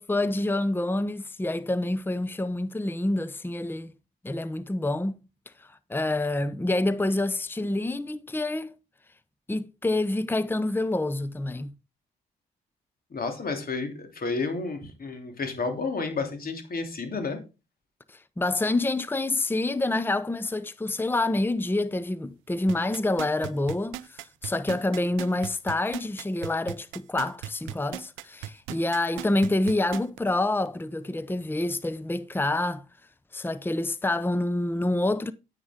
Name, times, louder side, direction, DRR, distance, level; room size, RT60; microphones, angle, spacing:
voice 1, 0.0-3.9 4.2-5.2 5.7-8.7 9.5-11.7 18.1-32.8 33.3-35.3, left 2 dB, 10° left, 0.8 m, -27 dB
voice 2, 13.1-17.4, left 4 dB, 45° left, 3.1 m, -31 dB
sound 1, 22.7-30.2 30.6-30.7, right 15 dB, 80° right, 0.5 m, -37 dB
9.8 x 9.4 x 3.7 m
hypercardioid pair, 45°, 20 cm